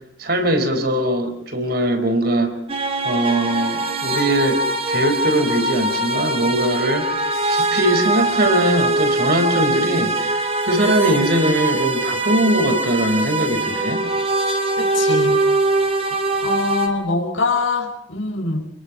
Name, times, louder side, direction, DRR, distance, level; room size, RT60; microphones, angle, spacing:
voice 1, 0.2-2.5 3.0-4.6 4.9-10.4 10.6-14.1, right 1 dB, 50° right, 7 dB, 4.6 m, -20 dB
sound 1, 2.7-16.9, right 2 dB, 30° right, 2.7 m, -22 dB
voice 2, 14.8-15.4 15.8-16.2 16.4-18.7, left 3 dB, 85° left, 1 dB, 4.7 m, -24 dB
29.5 x 22.0 x 6.2 m, 0.67 s
head